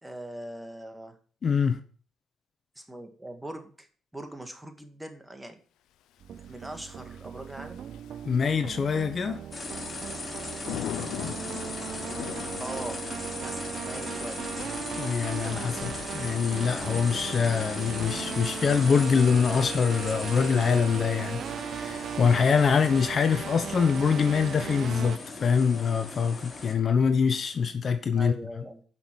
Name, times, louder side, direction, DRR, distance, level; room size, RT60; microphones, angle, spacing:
voice 1, 0.0-1.2 2.8-3.9 4.1-5.6 6.3-7.8 12.6-13.0 13.4-14.4 28.1-28.8, right 1 dB, 10° right, 2.0 m, -41 dB
voice 2, 1.4-1.8 8.2-9.4 15.0-28.3, left 6 dB, 45° left, 1.0 m, -24 dB
sound 1, 6.2-25.2, right 9 dB, 65° right, 0.4 m, -38 dB
Thunder / Rain, 6.3-22.9, left 12 dB, 85° left, 0.7 m, -44 dB
sound 2, 9.5-26.7, left 3 dB, 25° left, 3.4 m, -39 dB
9.4 x 6.1 x 7.5 m
cardioid pair, 90°, 0 cm